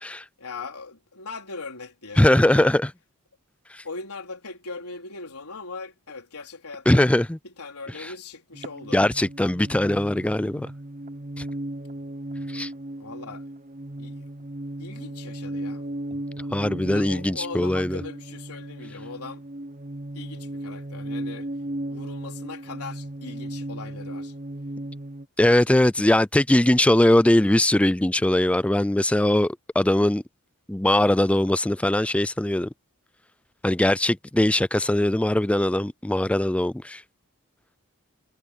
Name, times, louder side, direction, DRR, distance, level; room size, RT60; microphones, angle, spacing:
voice 1, 0.4-2.7 3.8-7.1 7.4-9.0 13.0-13.5 14.0-14.5 14.8-15.8 16.8-19.4 20.1-21.5 21.9-24.3, left 4 dB, 80° left, 4.4 m, -39 dB
voice 2, 2.2-2.9 6.9-7.4 8.0-8.1 8.9-10.7 12.5-12.7 16.5-18.0 25.4-30.2 30.7-32.7 33.6-37.0, left 1 dB, 5° left, 0.3 m, -21 dB
sound 1, 8.5-25.3, right 1 dB, 35° right, 0.9 m, -36 dB
head